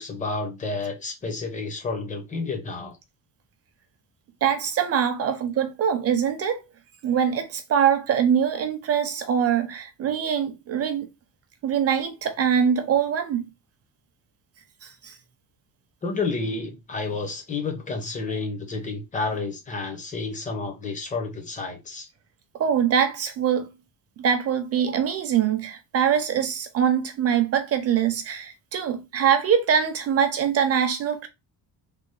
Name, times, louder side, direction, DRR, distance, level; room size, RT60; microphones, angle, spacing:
voice 1, 0.0-3.0 16.0-22.1, left 3 dB, 20° left, 0.7 m, -30 dB
voice 2, 4.4-6.6 7.0-11.1 11.6-13.5 14.8-15.2 22.6-23.7 24.2-31.3, right 8 dB, 40° right, 0.6 m, -23 dB
3.4 x 2.3 x 3.2 m
cardioid pair, 165°, 37 cm